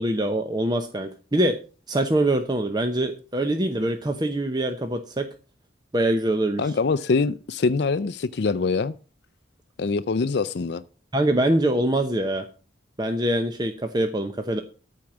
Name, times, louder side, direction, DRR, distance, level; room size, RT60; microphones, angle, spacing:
voice 1, 0.0-1.6 1.9-5.3 5.9-6.7 11.1-12.5 13.0-14.6, right 1 dB, 20° right, 0.7 m, -24 dB
voice 2, 6.6-8.9 9.8-10.8, left 4 dB, 60° left, 0.4 m, -24 dB
13.5 x 4.6 x 7.3 m
head